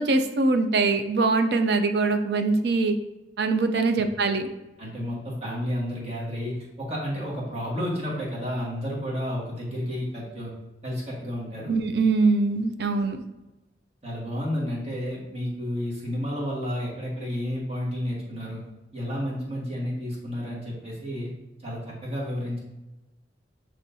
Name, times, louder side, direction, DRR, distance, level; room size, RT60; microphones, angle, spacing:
voice 1, 0.0-2.9 3.4-4.5 11.7-13.2, right 3 dB, 65° right, 8 dB, 0.4 m, -23 dB
voice 2, 4.8-10.5 10.8-11.8 14.0-18.6 18.9-21.3 21.6-22.6, equal, 35° right, -5 dB, 1.4 m, -31 dB
6.1 x 3.2 x 2.6 m, 1.0 s
head